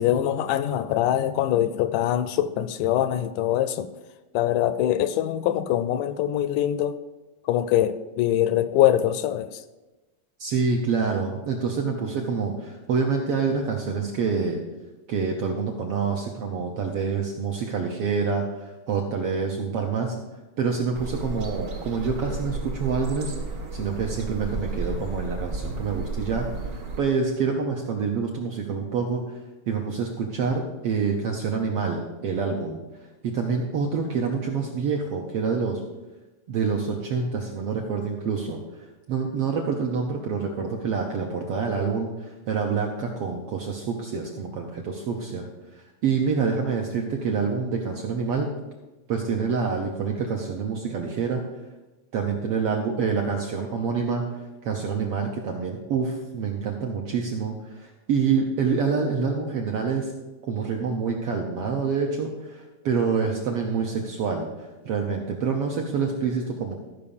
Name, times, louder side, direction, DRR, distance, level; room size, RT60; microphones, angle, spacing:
voice 1, 0.0-3.9 4.3-7.0 7.5-9.6, left 12 dB, 80° left, 13 dB, 2.0 m, -23 dB
voice 2, 10.4-14.6 15.1-20.1 20.6-23.3 23.7-26.5 26.7-29.4 29.7-32.8 33.2-35.8 36.5-38.6 39.1-45.5 46.0-48.5 49.1-51.4 52.1-60.1 60.4-64.5 64.8-66.7, right 5 dB, 70° right, 1 dB, 1.5 m, -27 dB
sound 1, 20.9-27.0, right 3 dB, 55° right, 1.3 m, -33 dB
13.0 x 5.3 x 7.0 m, 1.1 s
omnidirectional pair, 3.7 m